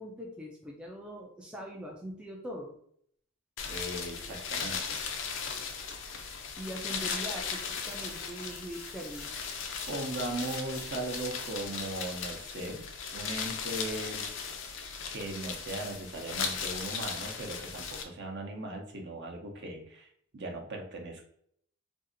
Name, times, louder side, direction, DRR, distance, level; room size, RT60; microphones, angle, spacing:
voice 1, 0.0-2.8 6.6-9.4, equal, 5° right, -2 dB, 0.4 m, -42 dB
sound 1, 3.6-18.0, left 6 dB, 60° left, 0.5 m, -37 dB
voice 2, 3.6-5.0 9.9-12.9 13.1-14.3 15.1-20.1 20.3-21.3, right 2 dB, 50° right, 2 dB, 0.7 m, -38 dB
sound 2, 7.2-12.4, left 3 dB, 90° left, 1.1 m, -49 dB
2.7 x 2.4 x 3.7 m, 0.65 s
head